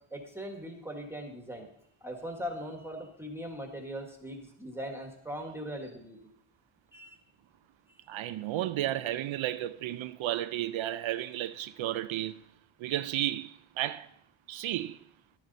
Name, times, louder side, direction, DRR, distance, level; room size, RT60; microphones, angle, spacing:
voice 1, 0.1-1.7 2.0-6.2 6.9-7.2, equal, 5° right, 1.5 m, -40 dB
voice 2, 8.1-12.5 12.8-14.1 14.5-15.0, right 13 dB, 70° right, 0.6 m, -33 dB
12.0 x 11.5 x 4.0 m
wide cardioid pair, 170°, 50 cm